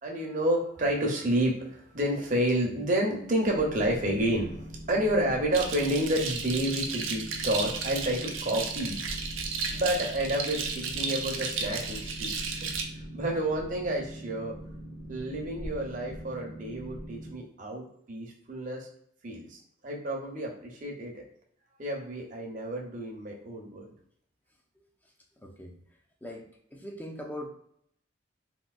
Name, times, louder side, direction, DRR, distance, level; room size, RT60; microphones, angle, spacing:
voice 1, 0.0-9.0 9.7-12.3 12.6-12.7 13.1-14.5 15.1-18.9 19.2-21.2 21.8-23.9, right 1 dB, 40° right, 0 dB, 0.7 m, -30 dB
Boat Water vehicle, 3.5-17.3, equal, 40° left, 0.8 m, -42 dB
sound 1, 5.5-12.8, right 5 dB, 75° right, 0.5 m, -34 dB
voice 2, 24.8-25.8 26.2-27.5, left 1 dB, 10° left, 1 dB, 0.4 m, -42 dB
3.7 x 2.7 x 2.3 m, 0.67 s
head